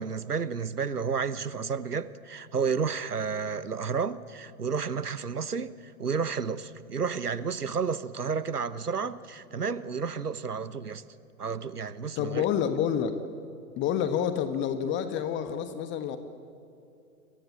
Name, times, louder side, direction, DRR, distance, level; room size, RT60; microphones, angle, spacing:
voice 1, 0.0-11.0 11.4-12.4, right 5 dB, 85° right, 1.2 m, -31 dB
voice 2, 12.2-13.2 13.8-16.2, left 8 dB, 25° left, 1.3 m, -28 dB
29.5 x 23.0 x 7.3 m
figure-of-eight pair, 110°, 45 cm